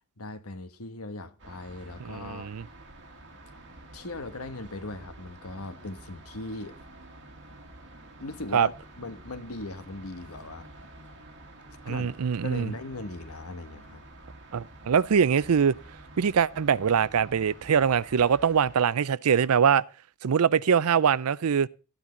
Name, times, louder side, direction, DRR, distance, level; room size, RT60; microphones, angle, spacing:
voice 1, 0.2-2.5 3.9-6.8 8.2-10.7 11.8-12.1 12.4-14.0, left 2 dB, 80° left, 1.2 m, -39 dB
sound 1, 1.4-18.8, right 2 dB, 55° right, 2.4 m, -49 dB
voice 2, 2.0-2.6 8.5-8.7 11.9-12.7 14.5-15.7 16.2-19.8 20.2-21.7, right 7 dB, 80° right, 0.5 m, -23 dB
13.0 x 10.0 x 3.9 m
head